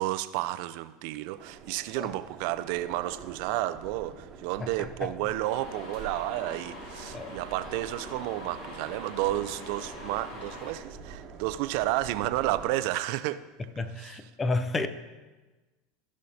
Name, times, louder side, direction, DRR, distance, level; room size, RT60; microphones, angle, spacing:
voice 1, 0.0-13.4 14.0-14.2, right 15 dB, 60° right, 0.4 m, -31 dB
sound 1, 1.4-12.7, right 5 dB, 40° right, 1.1 m, -46 dB
voice 2, 4.6-5.1 7.1-7.3 13.8-14.9, left 3 dB, 20° left, 0.7 m, -31 dB
sound 2, 5.4-10.7, left 1 dB, 60° left, 2.3 m, -44 dB
15.0 x 6.3 x 2.7 m
hypercardioid pair, 80°, 0 cm